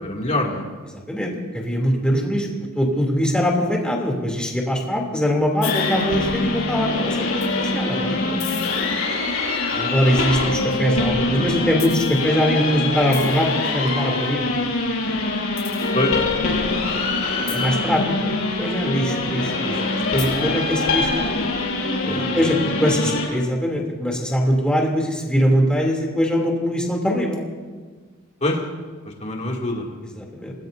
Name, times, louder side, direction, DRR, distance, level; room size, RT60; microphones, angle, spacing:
voice 1, 0.0-0.7 15.9-16.1 22.0-23.4 28.4-28.6 29.2-30.0, left 1 dB, 35° left, -1 dB, 2.5 m, -26 dB
voice 2, 1.1-2.5 2.7-8.4 9.7-14.5 17.3-21.2 22.0-27.4 30.2-30.5, equal, 5° left, -1 dB, 3.0 m, -22 dB
sound 1, 5.6-23.3, left 3 dB, 85° left, 5.1 m, -24 dB
26.5 x 20.0 x 2.7 m, 1.5 s
head